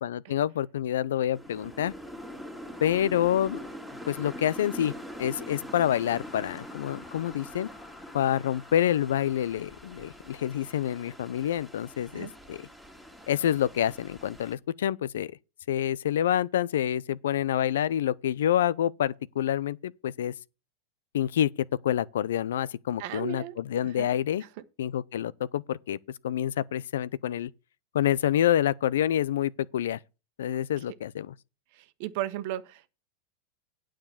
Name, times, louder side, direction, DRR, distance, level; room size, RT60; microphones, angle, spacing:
voice 1, 0.0-1.9 2.8-3.6 4.1-4.9 5.2-7.7 8.1-12.7 13.3-15.3 15.7-20.3 21.1-21.5 21.8-24.4 24.8-26.0 26.2-27.5 27.9-30.0 30.4-31.3, left 11 dB, 85° left, 0.5 m, -27 dB
sound 1, 1.3-14.5, equal, 5° left, 2.2 m, -44 dB
sound 2, 6.1-12.1, left 6 dB, 30° left, 1.5 m, -55 dB
voice 2, 23.0-23.5 24.0-24.1 31.7-32.9, right 13 dB, 60° right, 1.1 m, -35 dB
9.4 x 5.0 x 7.2 m
supercardioid pair, 130°, 0 cm